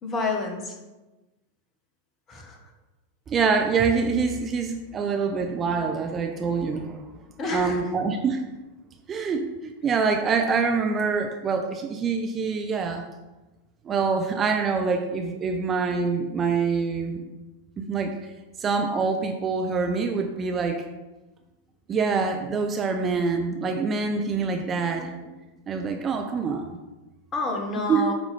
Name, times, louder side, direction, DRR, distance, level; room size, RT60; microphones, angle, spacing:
voice 1, 0.0-0.7 2.3-2.6 7.4-7.8 27.3-28.1, left 3 dB, 25° left, 2 dB, 1.5 m, -28 dB
voice 2, 3.3-7.0 7.5-8.4 9.1-13.0 13.8-17.2 17.8-18.1 18.6-20.8 21.9-25.3 25.7-26.8 27.9-28.1, right 5 dB, 25° right, 4 dB, 0.6 m, -25 dB
8.5 x 4.3 x 4.4 m, 1.1 s
figure-of-eight pair, 90°, 0 cm